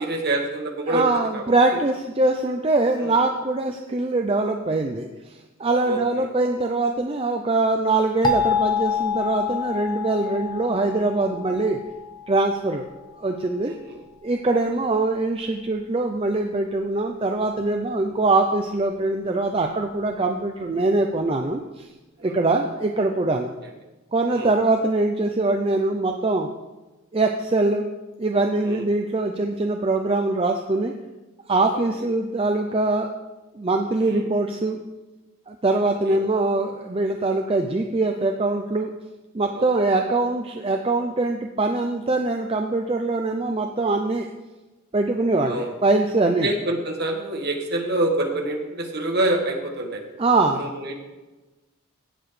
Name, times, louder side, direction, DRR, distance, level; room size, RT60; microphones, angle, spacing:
voice 1, 0.0-1.1 1.3-1.8 3.0-3.3 5.8-6.3 13.6-14.0 22.2-22.4 24.3-24.5 28.6-28.8 34.1-34.2 36.1-36.2 39.5-39.6 45.4-45.7 46.4-50.0 50.5-50.9, right 1 dB, 45° right, 2 dB, 1.4 m, -26 dB
voice 2, 0.9-11.8 12.3-12.9 13.2-13.7 14.2-21.9 22.2-23.5 24.1-26.5 27.1-27.8 28.2-30.9 31.5-33.1 33.5-34.8 35.5-38.9 39.3-44.3 44.9-46.5 50.2-50.7, right 2 dB, 25° right, 4 dB, 0.5 m, -23 dB
sound 1, 8.2-13.0, left 5 dB, 20° left, 0.6 m, -27 dB
16.5 x 6.9 x 3.3 m, 1.1 s
head